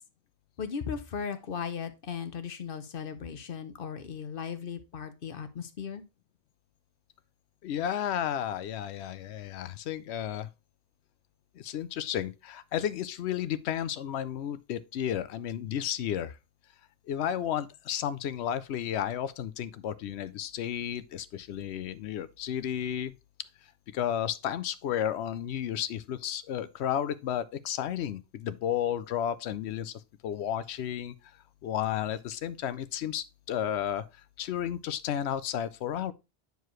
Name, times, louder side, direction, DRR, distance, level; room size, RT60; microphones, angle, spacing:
voice 1, 0.6-6.0, left 7 dB, 60° left, 1.0 m, -37 dB
voice 2, 7.6-10.5 11.6-16.3 17.1-23.1 23.9-29.9 30.2-31.1 31.6-34.0 34.4-36.1, left 10 dB, 90° left, 0.9 m, -32 dB
9.3 x 4.7 x 3.1 m
omnidirectional pair, 1.1 m